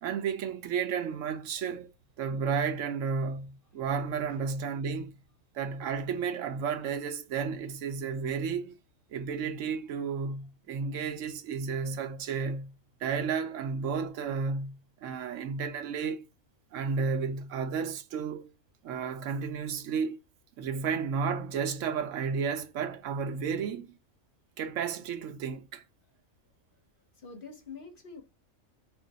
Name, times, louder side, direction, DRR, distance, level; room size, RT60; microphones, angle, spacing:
voice 1, 0.0-1.9 2.2-5.2 5.5-8.8 9.1-12.7 13.0-16.3 16.7-18.5 18.8-20.2 20.6-24.0 24.6-25.8, right 6 dB, 75° right, 0.9 m, -32 dB
voice 2, 27.2-28.2, left 4 dB, 50° left, 0.8 m, -45 dB
3.1 x 2.6 x 3.9 m
omnidirectional pair, 1.4 m